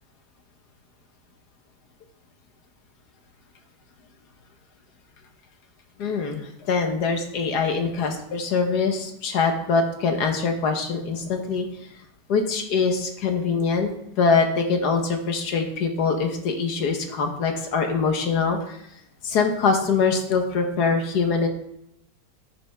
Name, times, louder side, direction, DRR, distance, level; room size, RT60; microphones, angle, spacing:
voice 1, 6.0-11.7 12.3-13.9 14.2-18.8 19.2-21.5, left 4 dB, 65° left, 5 dB, 1.6 m, -23 dB
9.9 x 9.1 x 3.4 m, 0.78 s
omnidirectional pair, 2.0 m